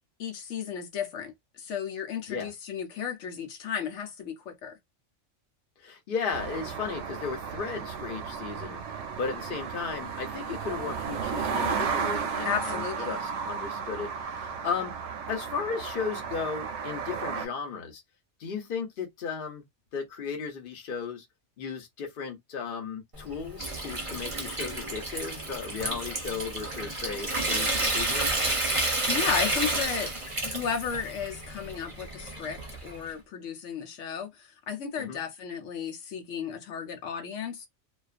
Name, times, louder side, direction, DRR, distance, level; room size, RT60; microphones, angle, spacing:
voice 1, 0.2-4.8 12.4-13.1 29.0-30.1 30.4-37.7, left 7 dB, 80° left, 0.9 m, -34 dB
voice 2, 5.8-8.8 9.2-14.9 15.3-18.0 18.4-19.6 19.9-21.3 21.6-28.3 35.0-35.2, left 5 dB, 50° left, 0.9 m, -35 dB
sound 1, 6.3-17.5, right 6 dB, 75° right, 0.9 m, -34 dB
Water tap faucet / Sink (filling or washing) / Trickle dribble, 23.1-33.1, right 2 dB, 30° right, 0.7 m, -31 dB
2.4 x 2.3 x 2.4 m
omnidirectional pair, 1.3 m